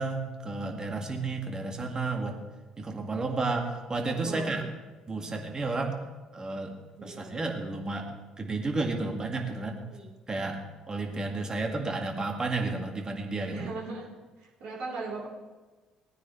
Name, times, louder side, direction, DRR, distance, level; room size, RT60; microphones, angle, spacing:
voice 1, 0.0-2.4 2.8-4.7 5.1-6.0 6.3-6.7 7.0-8.1 8.4-9.8 10.3-10.6 10.9-13.7, right 3 dB, 30° right, 3 dB, 2.0 m, -32 dB
voice 2, 4.2-4.7 7.0-7.3 9.9-10.1 13.5-14.0 14.4-15.3, right 3 dB, 60° right, -6 dB, 4.0 m, -38 dB
18.0 x 9.3 x 3.3 m, 1.3 s
figure-of-eight pair, 50°, 3 cm